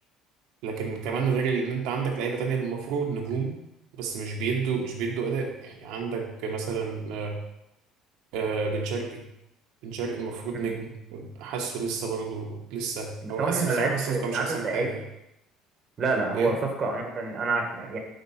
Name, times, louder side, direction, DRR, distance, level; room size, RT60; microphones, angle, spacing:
voice 1, 0.6-3.5 4.0-7.4 8.3-9.2 9.8-15.0 16.3-16.5, right 5 dB, 80° right, 0 dB, 1.1 m, -30 dB
voice 2, 13.2-14.9 16.0-18.0, right 3 dB, 35° right, 1 dB, 1.2 m, -28 dB
5.4 x 3.7 x 5.5 m, 0.86 s
cardioid pair, 135°, 0 cm